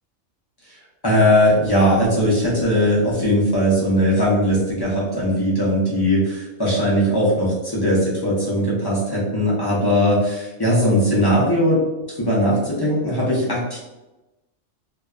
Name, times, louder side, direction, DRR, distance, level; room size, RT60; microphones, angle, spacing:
voice 1, 1.0-11.8 12.2-13.8, equal, 35° left, -6 dB, 0.4 m, -19 dB
2.6 x 2.2 x 2.3 m, 1.0 s
omnidirectional pair, 1.3 m